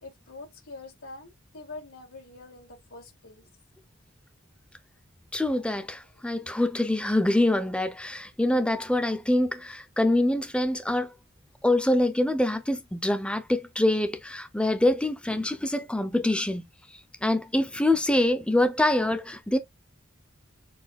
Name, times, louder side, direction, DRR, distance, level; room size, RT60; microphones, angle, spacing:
voice 1, 0.0-3.5 6.2-6.4, left 3 dB, 85° left, 3.2 m, -45 dB
voice 2, 5.3-11.1 11.6-16.7 17.2-19.6, left 1 dB, 5° left, 0.6 m, -25 dB
6.5 x 2.7 x 2.3 m
head